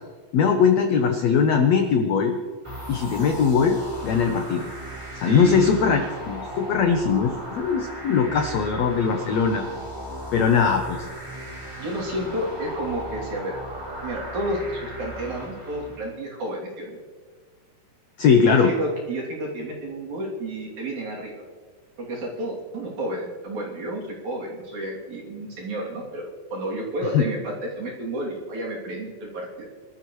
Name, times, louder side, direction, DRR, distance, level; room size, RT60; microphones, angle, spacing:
voice 1, 0.3-2.4 2.9-4.7 5.2-9.6 10.3-11.1 18.2-18.7 27.1-27.2, left 6 dB, 80° left, 5 dB, 1.5 m, -20 dB
sound 1, 2.6-16.1, right 1 dB, 10° right, 2.8 m, -37 dB
voice 2, 5.3-6.1 11.8-13.6 14.0-17.0 18.4-21.4 22.0-29.7, right 1 dB, 55° right, -4 dB, 4.1 m, -31 dB
25.0 x 12.5 x 3.1 m, 1.5 s
omnidirectional pair, 4.3 m